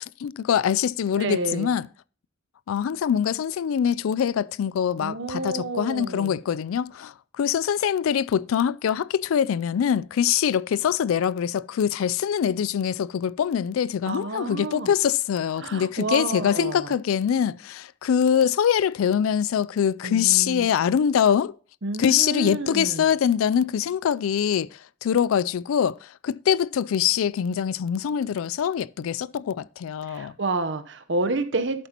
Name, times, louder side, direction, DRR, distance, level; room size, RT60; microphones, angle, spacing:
voice 1, 0.2-1.9 2.7-21.6 22.0-24.7 25.0-26.0 26.2-30.3, left 8 dB, 90° left, 0.3 m, -23 dB
voice 2, 1.2-1.7 5.0-6.4 14.1-14.9 15.6-16.9 20.0-20.7 21.8-23.1 30.1-31.9, right 2 dB, 60° right, 0.8 m, -29 dB
11.5 x 8.1 x 2.9 m
head